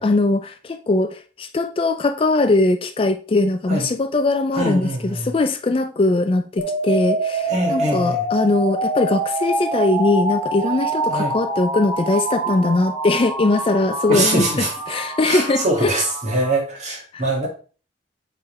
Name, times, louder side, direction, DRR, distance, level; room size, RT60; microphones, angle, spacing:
voice 1, 0.0-16.0 17.1-17.2, left 2 dB, 30° left, 0.4 m, -20 dB
voice 2, 4.5-5.3 7.5-8.2 11.1-11.3 14.1-14.7 15.3-17.5, right 1 dB, 40° right, 2.1 m, -23 dB
sound 1, 6.6-16.6, right 2 dB, 20° right, 1.8 m, -26 dB
7.9 x 3.7 x 3.2 m
head